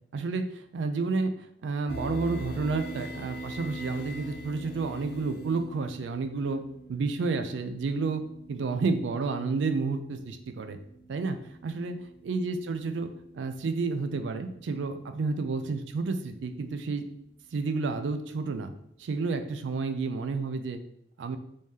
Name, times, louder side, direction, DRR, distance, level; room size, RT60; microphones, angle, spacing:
voice 1, 0.1-1.3 1.6-6.6 6.9-8.2 8.5-10.8 11.1-11.4 11.6-13.1 13.3-17.0 17.5-18.7 19.0-20.8 21.2-21.4, right 4 dB, 90° right, 8 dB, 0.4 m, -30 dB
sound 1, 1.9-17.0, right 1 dB, 65° left, 0.6 m, -44 dB
3.1 x 2.7 x 3.5 m, 0.73 s
head